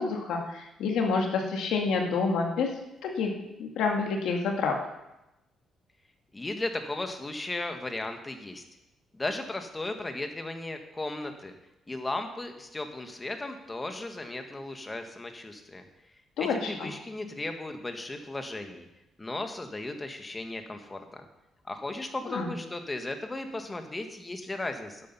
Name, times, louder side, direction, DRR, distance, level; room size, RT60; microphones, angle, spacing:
voice 1, 0.0-2.7 3.0-3.3 3.6-4.7 16.4-16.9 22.3-22.5, left 4 dB, 85° left, 2 dB, 2.1 m, -28 dB
voice 2, 6.3-8.6 9.1-11.5 11.9-15.8 16.4-18.9 19.2-21.2 21.7-25.0, left 2 dB, 20° left, 6 dB, 1.6 m, -36 dB
12.0 x 8.6 x 5.6 m, 0.94 s
cardioid pair, 105°, 0 cm